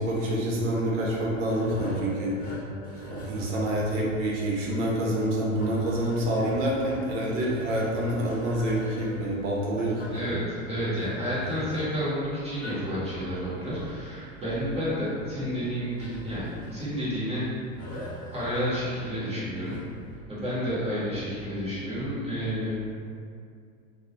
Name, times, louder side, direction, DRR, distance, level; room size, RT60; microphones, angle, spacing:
voice 1, 0.0-2.6 3.0-10.0, right 1 dB, 60° right, -4 dB, 0.7 m, -27 dB
sound 1, 1.5-20.1, equal, 20° left, 0.6 m, -42 dB
voice 2, 10.1-17.5 18.3-19.8 20.3-22.7, equal, 15° right, -9 dB, 0.7 m, -30 dB
2.3 x 2.0 x 2.9 m, 2.3 s
figure-of-eight pair, 90°, 41 cm